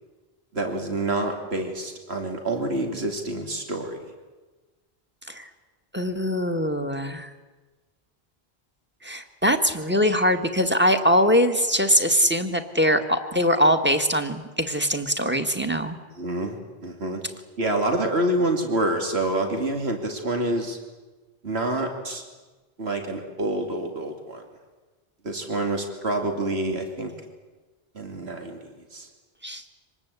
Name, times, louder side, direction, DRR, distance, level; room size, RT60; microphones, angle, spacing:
voice 1, 0.5-4.0 16.2-17.2 17.6-20.8 21.4-22.2 22.8-24.4 25.2-27.1 27.9-28.6 28.9-29.1, right 1 dB, 90° right, 4 dB, 2.7 m, -27 dB
voice 2, 5.9-7.3 9.0-16.0 29.4-29.6, equal, 10° right, 8 dB, 1.7 m, -22 dB
25.5 x 20.0 x 8.3 m, 1.3 s
omnidirectional pair, 1.0 m